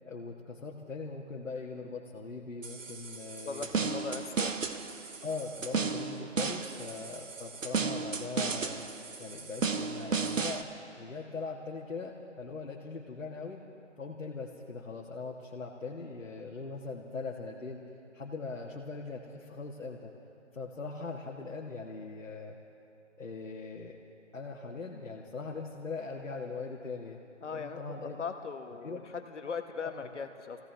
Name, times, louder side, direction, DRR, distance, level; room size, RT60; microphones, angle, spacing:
voice 1, 0.0-4.0 5.2-8.8 9.2-10.7 11.0-13.6 14.0-17.8 18.1-20.1 20.5-22.6 23.2-24.0 24.3-27.2 27.5-28.2 28.8-29.0 29.8-30.1, left 4 dB, 90° left, -2 dB, 1.7 m, -41 dB
sound 1, 2.6-10.6, right 5 dB, 90° right, 1.1 m, -34 dB
voice 2, 3.4-4.5 27.4-30.6, left 5 dB, 65° left, 6 dB, 1.3 m, -39 dB
25.5 x 16.5 x 3.4 m, 2.8 s
hypercardioid pair, 165°, 38 cm